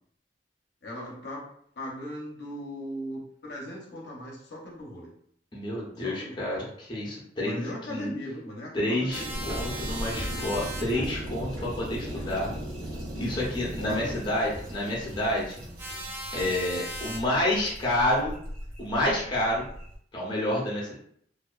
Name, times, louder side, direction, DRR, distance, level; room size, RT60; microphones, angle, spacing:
voice 1, 0.8-1.5 1.8-5.1 6.0-6.5 7.4-9.7 13.8-14.1 16.4-16.6, left 1 dB, 65° left, -3 dB, 0.6 m, -38 dB
voice 2, 5.5-8.1 8.7-12.5 13.2-15.6 16.3-18.3 18.8-19.7 20.1-20.9, left 1 dB, 25° left, -5 dB, 0.6 m, -29 dB
sound 1, 9.1-10.8 15.8-17.2, right 1 dB, 10° right, 0.3 m, -37 dB
sound 2, 9.1-14.2, equal, 80° right, 0.6 m, -38 dB
sound 3, 9.3-20.0, equal, 55° right, 0.9 m, -40 dB
2.5 x 2.2 x 2.3 m, 0.64 s
head